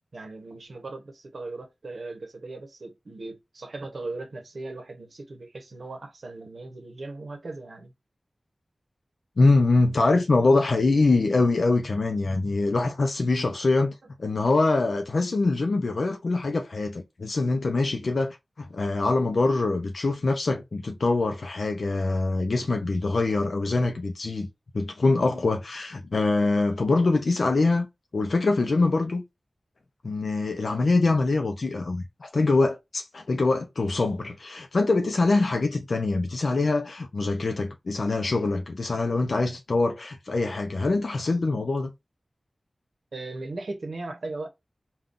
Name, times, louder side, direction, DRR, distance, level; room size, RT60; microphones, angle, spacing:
voice 1, 0.1-7.9 43.1-44.5, right 2 dB, 75° right, 0.8 m, -38 dB
voice 2, 9.4-24.5 24.7-27.9 28.1-29.2 30.0-41.9, left 3 dB, 70° left, 0.5 m, -24 dB
3.6 x 2.3 x 2.4 m
wide cardioid pair, 85°, 0 cm